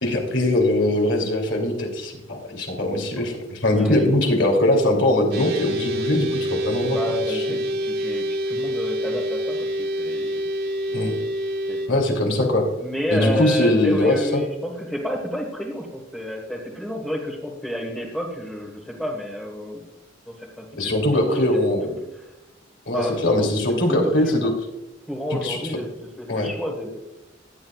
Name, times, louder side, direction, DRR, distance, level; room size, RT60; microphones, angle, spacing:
voice 1, 0.0-7.0 7.3-7.4 10.9-11.1 11.9-12.7 13.1-14.4 20.8-21.9 22.9-24.5 25.3-25.6 26.3-26.5, left 1 dB, 70° left, 2 dB, 3.0 m, -21 dB
sound 1, 5.3-11.9, equal, 55° right, 1.3 m, -27 dB
voice 2, 6.9-10.5 10.9-11.1 11.7-12.0 12.8-19.9 20.3-21.6 22.9-24.3 25.1-27.0, equal, 5° left, -4 dB, 1.6 m, -30 dB
15.5 x 10.0 x 2.4 m, 0.95 s
head